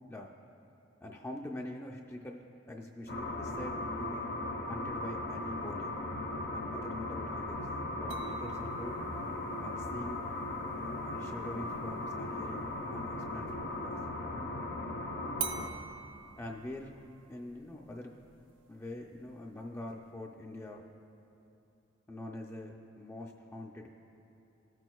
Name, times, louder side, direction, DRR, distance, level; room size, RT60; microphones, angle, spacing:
voice 1, 1.0-4.3 4.7-6.0 6.5-9.0 9.6-10.2 10.8-14.1 16.4-17.0 17.3-18.1 18.7-20.8 22.1-23.9, left 1 dB, 15° left, 0 dB, 0.3 m, -44 dB
sound 1, 3.1-15.7, left 2 dB, 55° left, 0.7 m, -37 dB
sound 2, 8.1-13.7 15.4-20.4, right 7 dB, 70° right, 0.6 m, -47 dB
16.0 x 6.1 x 2.3 m, 2.8 s
head